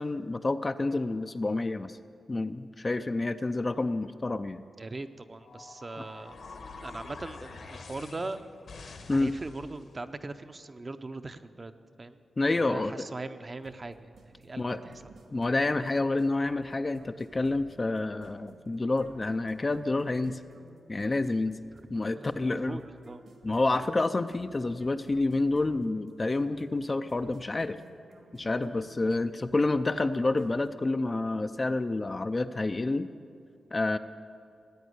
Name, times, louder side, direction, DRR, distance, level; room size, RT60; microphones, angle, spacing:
voice 1, 0.0-2.0 2.3-4.6 9.1-9.3 12.4-13.1 14.6-14.8 15.3-20.4 20.9-21.6 21.9-22.8 23.4-27.8 28.3-33.1 33.7-34.0, left 2 dB, 25° left, 10 dB, 0.4 m, -28 dB
voice 2, 4.8-6.4 6.8-8.4 9.1-11.7 12.0-12.2 12.6-15.1 21.7-21.8 22.2-23.2, right 3 dB, 30° right, 9 dB, 0.6 m, -40 dB
sound 1, 5.4-10.0, left 4 dB, 60° left, 1.4 m, -46 dB
sound 2, 13.6-31.1, right 3 dB, 75° right, 2.0 m, -55 dB
16.0 x 9.2 x 9.5 m, 2.4 s
wide cardioid pair, 130°, 0 cm